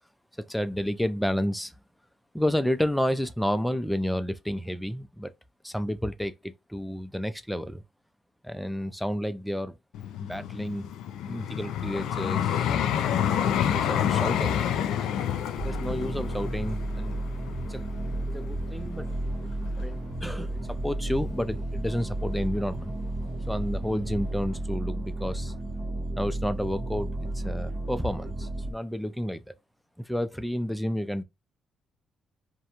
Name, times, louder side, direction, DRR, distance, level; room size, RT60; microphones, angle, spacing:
voice 1, 0.4-1.7 2.3-5.3 5.6-7.8 8.4-9.8 10.2-10.9 11.3-12.8 13.6-14.6 15.6-17.2 17.7-17.8 18.3-19.1 19.8-22.9 23.5-25.5 26.2-27.1 27.3-29.4 30.0-31.2, equal, ahead, 0.4 m, -30 dB
Vehicle, 9.9-19.0 19.6-19.8, left 9 dB, 85° left, 0.3 m, -28 dB
sound 1, 15.6-28.7, right 1 dB, 55° right, 1.1 m, -32 dB
2.5 x 2.2 x 2.9 m
cardioid pair, 90°, 0 cm